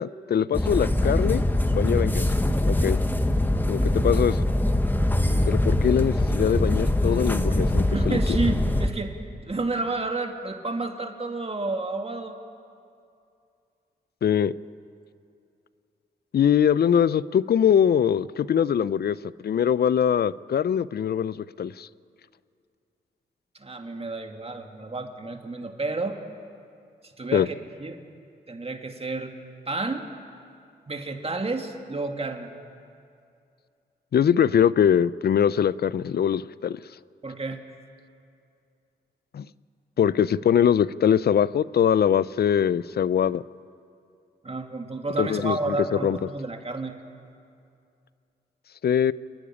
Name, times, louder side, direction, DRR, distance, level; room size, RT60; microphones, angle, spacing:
voice 1, 0.0-1.4 1.7-2.3 2.6-3.0 3.7-4.5 5.5-8.2 14.2-14.5 16.3-19.2 19.4-21.9 27.3-27.5 34.1-36.8 39.3-39.5 40.0-43.4 45.2-45.8 46.0-46.2 48.8-49.1, left 8 dB, 60° left, 19 dB, 0.5 m, -22 dB
sound 1, 0.5-8.9, left 1 dB, 10° left, 1.4 m, -23 dB
voice 2, 5.2-5.5 7.9-12.4 23.5-26.2 27.0-27.5 27.8-28.0 28.5-29.3 29.7-30.1 30.9-32.5 37.2-37.6 44.4-47.0, right 3 dB, 30° right, 5 dB, 2.2 m, -31 dB
28.5 x 10.0 x 9.9 m, 2.5 s
cardioid pair, 60°, 19 cm